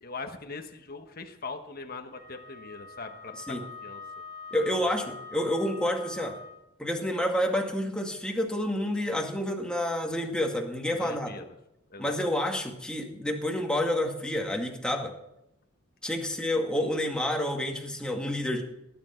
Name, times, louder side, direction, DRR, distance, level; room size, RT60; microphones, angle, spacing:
voice 1, 0.0-4.0 4.6-5.0 10.9-11.5 11.9-12.4, left 4 dB, 50° left, 5 dB, 1.2 m, -41 dB
Wind instrument woodwind instrument, 2.1-6.6, left 4 dB, 75° right, 5.7 m, -44 dB
voice 2, 4.5-6.4 6.8-11.4 12.0-15.1 16.0-18.6, left 1 dB, 5° left, 1 dB, 2.0 m, -29 dB
19.0 x 10.5 x 4.5 m, 0.85 s
head